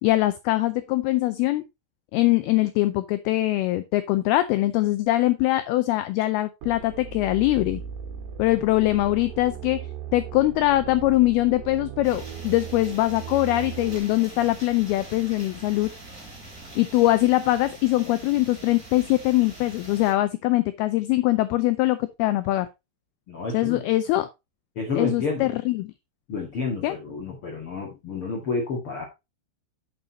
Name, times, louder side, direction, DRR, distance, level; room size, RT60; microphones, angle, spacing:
voice 1, 0.0-1.6 2.1-7.8 8.4-9.8 10.1-15.9 16.8-22.7 23.5-24.3 25.0-25.9 26.8-27.0, left 17 dB, 90° left, 2.2 m, -22 dB
sound 1, 6.6-14.0, right 8 dB, 75° right, 3.5 m, -37 dB
sound 2, 12.0-20.1, right 2 dB, 20° right, 3.5 m, -43 dB
voice 2, 23.3-23.8 24.8-25.5 26.3-29.0, left 4 dB, 45° left, 2.0 m, -30 dB
8.8 x 7.9 x 2.9 m
omnidirectional pair, 5.1 m